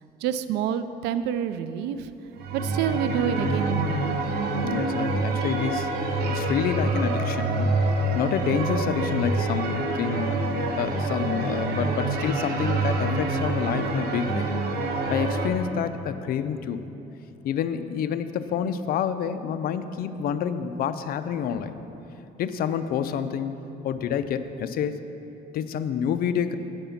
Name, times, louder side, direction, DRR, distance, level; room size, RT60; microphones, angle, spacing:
voice 1, 0.2-2.1 2.5-4.1, right 8 dB, 85° right, 12 dB, 0.5 m, -28 dB
sound 1, 2.4-15.5, right 2 dB, 65° right, 1.1 m, -26 dB
voice 2, 4.6-7.7 8.1-10.3 10.8-14.5 15.1-16.8 17.4-21.7 22.4-23.5 23.8-25.0 25.5-26.5, left 8 dB, 60° left, 11 dB, 0.5 m, -28 dB
10.0 x 5.4 x 7.1 m, 3.0 s
cardioid pair, 110°, 17 cm